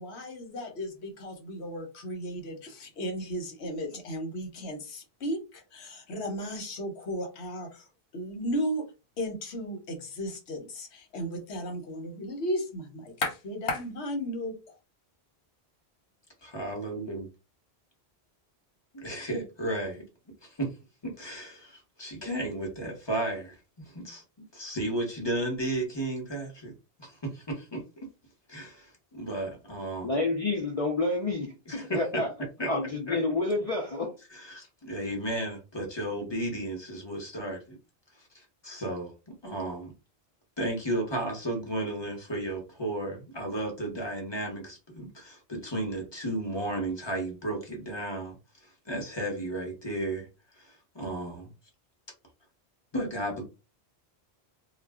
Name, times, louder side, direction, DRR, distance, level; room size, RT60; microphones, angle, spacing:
voice 1, 0.0-7.9 8.1-8.9 9.2-14.6, equal, 85° left, 1.1 m, -35 dB
voice 2, 16.5-17.3 18.9-20.0 20.4-20.7 21.0-23.6 23.8-24.2 24.5-26.7 27.0-27.8 28.5-30.1 31.7-32.3 32.6-32.7 33.1-33.2 34.3-37.8 38.3-39.9 40.6-48.4 48.9-50.3 50.6-51.5 52.9-53.4, right 1 dB, 25° left, 0.9 m, -34 dB
voice 3, 30.0-32.3 32.7-34.1, left 2 dB, 45° left, 0.5 m, -29 dB
2.4 x 2.1 x 3.5 m
omnidirectional pair, 1.1 m